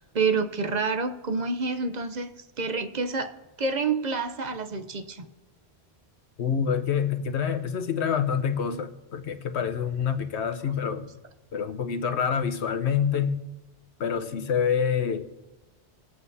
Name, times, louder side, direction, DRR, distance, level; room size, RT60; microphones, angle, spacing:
voice 1, 0.0-2.3 2.6-3.3 3.6-5.2, right 4 dB, 45° right, 8 dB, 0.7 m, -28 dB
voice 2, 6.4-11.1 11.5-13.4 14.0-15.3, left 7 dB, 80° left, 7 dB, 1.1 m, -27 dB
20.5 x 8.1 x 2.7 m, 1.1 s
omnidirectional pair, 1.1 m